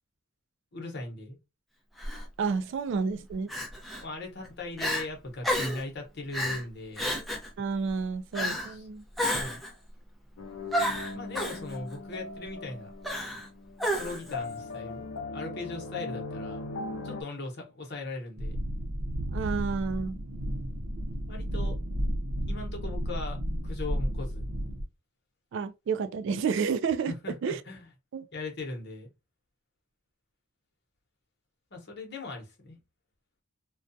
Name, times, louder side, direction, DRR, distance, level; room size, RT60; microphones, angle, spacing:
voice 1, 0.7-1.4 4.0-7.1 8.6-8.9 9.3-9.6 11.1-12.9 13.9-15.1 15.3-16.6 17.0-18.6 21.3-21.8 22.5-24.5 27.1-27.8 28.3-29.1 31.7-32.8, left 2 dB, 55° left, 0.9 m, -39 dB
Crying sobbing, 2.0-2.2 3.5-4.0 4.4-4.5 4.8-5.0 5.4-5.8 6.3-6.6 7.0-7.5 8.3-8.7 9.2-9.7 10.7-11.6 13.0-13.5 13.8-14.3, equal, ahead, 0.6 m, -30 dB
voice 2, 2.4-3.5 7.6-9.0 19.3-20.2 25.5-27.1 27.4-27.6 28.1-28.3, right 5 dB, 60° right, 0.3 m, -30 dB
sound 1, 10.4-17.2, left 3 dB, 85° left, 0.5 m, -39 dB
sound 2, 18.4-24.8, equal, 80° right, 0.7 m, -32 dB
2.3 x 2.2 x 2.6 m
head